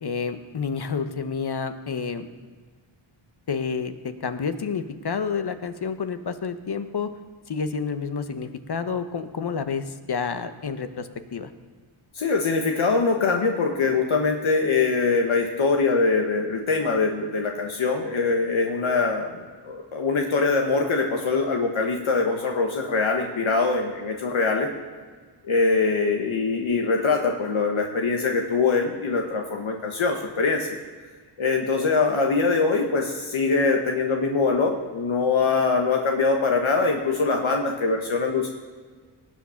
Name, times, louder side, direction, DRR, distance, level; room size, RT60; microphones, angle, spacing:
voice 1, 0.0-2.3 3.5-7.1 7.5-11.5, left 5 dB, 50° left, 9 dB, 1.0 m, -29 dB
voice 2, 12.1-24.7 25.4-30.8 31.4-38.5, left 4 dB, 70° left, 1 dB, 1.4 m, -23 dB
19.0 x 7.3 x 5.8 m, 1.5 s
cardioid pair, 60°, 49 cm